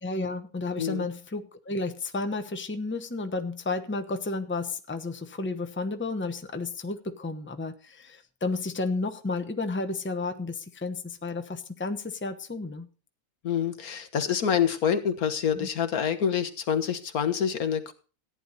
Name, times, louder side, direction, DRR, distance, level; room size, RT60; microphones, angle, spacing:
voice 1, 0.0-12.9 15.5-15.7, left 3 dB, 10° left, 7 dB, 0.9 m, -32 dB
voice 2, 13.4-17.9, left 8 dB, 80° left, 7 dB, 1.7 m, -27 dB
14.5 x 10.0 x 4.1 m, 0.37 s
omnidirectional pair, 1.5 m